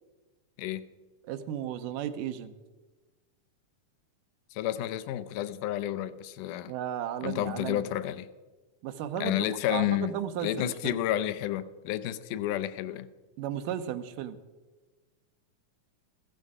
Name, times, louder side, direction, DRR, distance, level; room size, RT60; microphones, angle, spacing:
voice 1, 1.3-2.5 6.7-7.9 8.8-11.0 13.4-14.4, right 10 dB, 80° right, 9 dB, 2.3 m, -35 dB
voice 2, 4.5-6.7 7.2-8.3 9.2-10.1 10.4-13.1, left 13 dB, 80° left, 14 dB, 2.2 m, -31 dB
16.0 x 12.0 x 4.9 m, 1.2 s
omnidirectional pair, 3.8 m